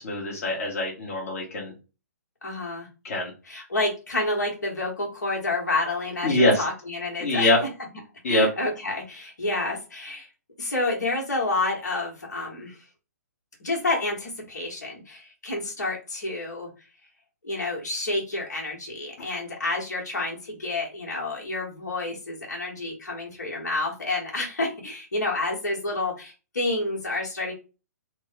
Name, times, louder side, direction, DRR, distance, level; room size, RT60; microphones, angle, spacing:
voice 1, 0.0-1.7 3.0-3.3 6.2-6.6 7.2-7.6 8.2-8.5, left 1 dB, 55° left, -2 dB, 1.4 m, -23 dB
voice 2, 2.4-2.9 3.4-7.5 8.3-10.3 10.6-12.8 13.6-16.7 17.4-27.5, left 2 dB, 80° left, -2 dB, 1.6 m, -29 dB
3.6 x 2.3 x 3.3 m, 0.31 s
figure-of-eight pair, 130°, 9 cm